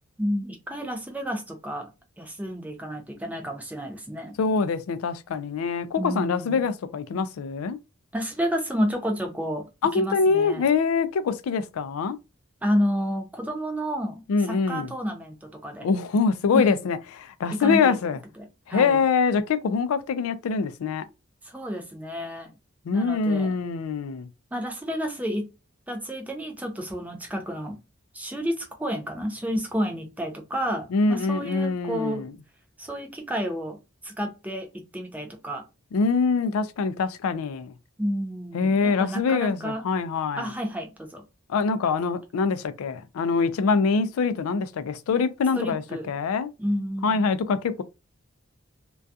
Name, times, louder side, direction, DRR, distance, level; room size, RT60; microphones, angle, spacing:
voice 1, 0.2-1.9 2.2-4.3 6.0-6.7 8.1-10.7 12.6-15.9 16.5-16.7 17.5-17.9 18.4-19.0 21.4-22.5 22.9-23.5 24.5-25.5 25.9-27.8 28.1-32.2 32.8-33.8 34.0-35.6 38.0-39.8 40.4-41.2 45.6-46.1 46.6-47.2, equal, 5° right, 0.4 m, -30 dB
voice 2, 4.4-7.8 9.8-12.2 14.3-14.9 15.8-18.2 18.7-21.0 22.9-24.3 30.9-32.3 35.9-37.7 38.5-40.4 41.5-46.5 47.0-47.8, left 5 dB, 75° left, 0.3 m, -24 dB
2.3 x 2.3 x 2.6 m
head